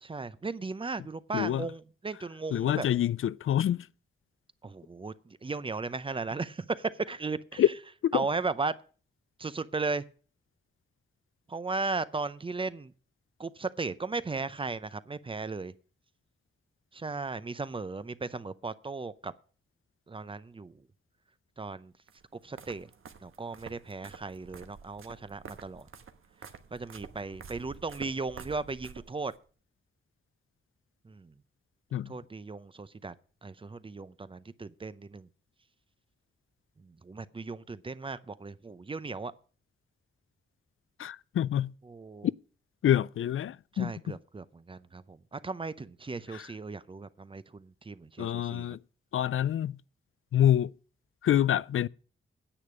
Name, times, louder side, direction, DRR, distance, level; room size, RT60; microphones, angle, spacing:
voice 1, 0.0-2.9 4.6-5.1 5.4-7.6 8.1-8.7 9.4-10.0 11.5-12.9 13.4-15.7 16.9-19.3 20.1-20.7 21.6-21.9 22.4-22.9 23.2-25.8 26.7-29.3 31.1-31.3 32.1-33.1 33.4-35.3 37.0-39.3 41.9-42.3 43.7-48.7, right 3 dB, 25° right, 0.6 m, -36 dB
voice 2, 1.3-1.7 2.5-3.9 7.6-7.7 8.0-8.3 31.9-32.1 41.0-41.7 42.8-43.9 46.3-46.5 48.2-48.8 49.1-49.7 50.3-50.7 51.2-51.9, left 11 dB, 75° left, 0.4 m, -26 dB
sound 1, 22.1-29.4, right 6 dB, 80° right, 1.2 m, -49 dB
10.0 x 8.7 x 6.2 m
wide cardioid pair, 155°, 21 cm